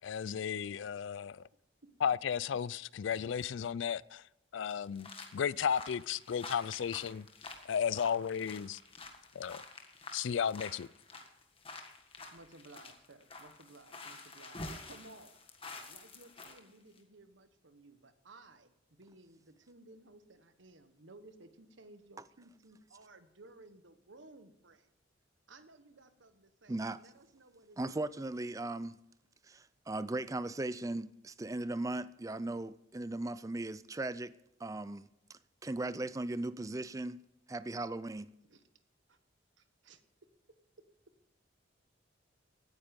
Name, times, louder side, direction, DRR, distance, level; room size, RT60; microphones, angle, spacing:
voice 1, 0.0-1.4 2.0-4.2 4.5-7.3 7.6-8.8 9.3-9.6 10.1-10.9, left 7 dB, 70° left, 0.4 m, -34 dB
sound 1, 4.7-16.6 17.0-17.1, left 3 dB, 30° left, 1.6 m, -49 dB
voice 2, 12.3-15.4 15.9-24.9 25.5-28.1 38.5-38.6 39.1-39.2 39.6-40.0, right 2 dB, 70° right, 1.2 m, -57 dB
voice 3, 26.7-27.0 27.8-29.0 29.5-34.3 34.6-35.0 35.6-37.2 37.5-38.3, right 2 dB, 15° right, 0.4 m, -37 dB
16.5 x 9.6 x 5.2 m
head